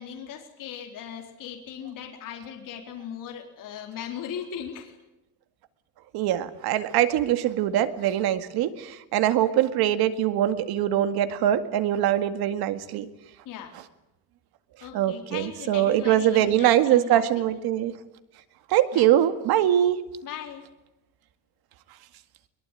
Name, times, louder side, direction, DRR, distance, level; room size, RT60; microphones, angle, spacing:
voice 1, 0.0-4.9 13.5-13.7 14.8-17.2 18.9-19.1 20.2-20.7, left 8 dB, 55° left, 2 dB, 4.1 m, -38 dB
voice 2, 6.1-13.1 13.7-13.8 14.9-17.9 18.7-20.0, right 12 dB, 80° right, 10 dB, 2.2 m, -23 dB
22.5 x 22.5 x 9.2 m, 0.93 s
cardioid pair, 150°, 37 cm